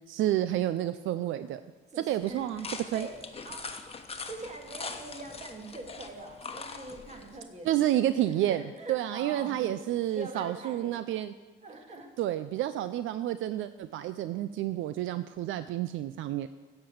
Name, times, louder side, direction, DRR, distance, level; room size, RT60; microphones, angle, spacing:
voice 1, 0.1-1.6 2.0-3.1 7.6-11.3 12.2-16.5, right 12 dB, 80° right, 12 dB, 0.4 m, -30 dB
voice 2, 1.9-3.1 3.4-3.6 4.2-9.7 10.1-11.0 11.6-12.1, right 2 dB, 35° right, 2 dB, 2.4 m, -44 dB
sound 1, 2.2-7.4, left 4 dB, 30° left, 1.1 m, -42 dB
10.5 x 6.7 x 7.9 m, 1.3 s
cardioid pair, 90°, 20 cm